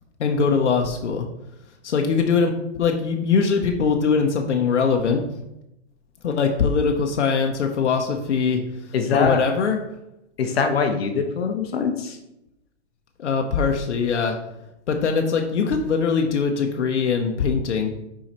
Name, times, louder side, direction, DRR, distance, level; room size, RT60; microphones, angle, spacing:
voice 1, 0.2-1.3 1.8-5.2 6.2-8.6 9.1-9.8 13.2-14.4 14.9-17.9, left 5 dB, 90° left, 3 dB, 0.9 m, -21 dB
voice 2, 8.9-9.4 10.4-12.2, left 5 dB, 60° left, 5 dB, 0.9 m, -23 dB
6.0 x 4.8 x 4.2 m, 0.86 s
hypercardioid pair, 160°, 34 cm